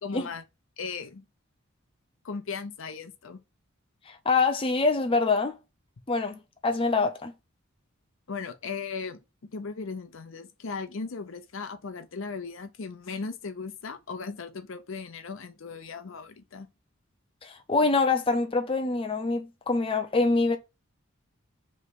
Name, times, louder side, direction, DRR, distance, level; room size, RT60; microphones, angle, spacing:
voice 1, 0.0-0.4 0.8-1.2 2.2-3.4 8.3-16.7, left 4 dB, 65° left, 0.7 m, -37 dB
voice 2, 4.1-5.5 6.1-7.3 17.4-20.6, left 3 dB, 25° left, 0.5 m, -25 dB
3.4 x 3.2 x 4.2 m
head